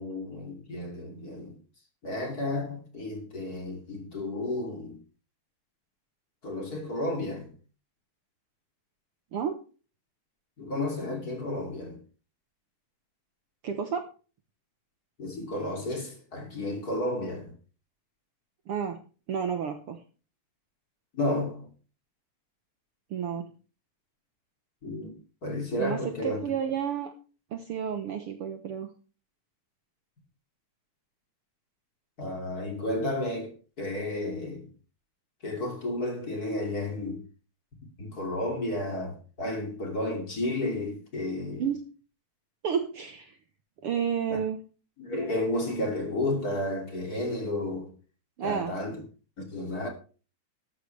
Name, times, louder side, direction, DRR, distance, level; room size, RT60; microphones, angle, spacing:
voice 1, 0.0-1.6 2.0-5.0 6.4-7.5 10.6-12.0 15.2-17.5 21.1-21.7 24.8-26.4 32.2-34.7 35.4-37.2 38.0-41.6 44.3-44.4 45.0-47.9 48.4-49.0 49.4-49.9, left 1 dB, 30° left, 2.9 m, -32 dB
voice 2, 13.6-14.1 18.7-19.0 19.3-20.0 23.1-23.5 25.7-27.1 27.5-28.9 41.6-41.8 42.6-43.4 43.8-44.6 48.4-48.7, right 7 dB, 60° right, 1.6 m, -31 dB
13.0 x 12.5 x 3.3 m
omnidirectional pair, 3.5 m